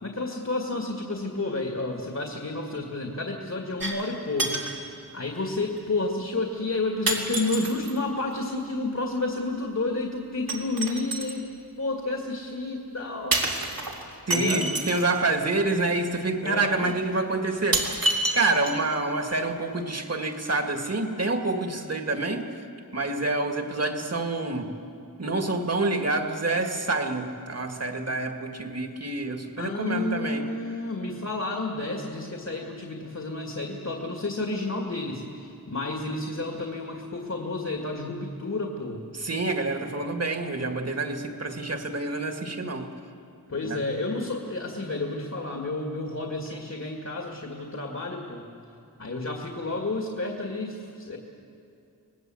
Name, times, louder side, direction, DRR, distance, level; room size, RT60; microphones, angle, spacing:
voice 1, 0.0-13.4 14.3-14.7 16.4-16.9 29.6-39.0 43.5-48.4 49.0-51.2, left 2 dB, 50° left, 1 dB, 2.1 m, -31 dB
sound 1, 3.8-4.1 4.4-4.8 5.8-5.9 7.1-8.0 10.5-11.4 13.3-15.1 16.2-16.3 16.9-17.0 17.7-19.0 19.3-19.4, right 2 dB, 85° right, 3.0 m, -28 dB
voice 2, 14.3-17.9 18.3-22.5 22.9-24.7 25.2-30.5 39.2-42.9 43.6-43.8, right 2 dB, 45° right, 5 dB, 2.1 m, -27 dB
26.0 x 19.5 x 7.8 m, 2.6 s
wide cardioid pair, 90°, 34 cm